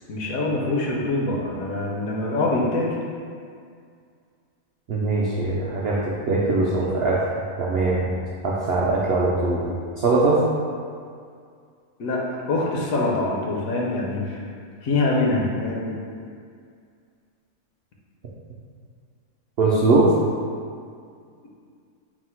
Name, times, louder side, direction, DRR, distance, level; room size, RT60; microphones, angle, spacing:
voice 1, 0.1-3.0 12.0-14.4 14.8-15.9, left 2 dB, 70° left, -2 dB, 1.0 m, -24 dB
voice 2, 4.9-6.0 6.3-7.2 7.6-8.1 8.4-9.7 10.0-10.4 19.6-20.1, right 3 dB, 75° right, -5 dB, 0.5 m, -21 dB
4.4 x 2.0 x 4.3 m, 2.2 s
omnidirectional pair, 1.6 m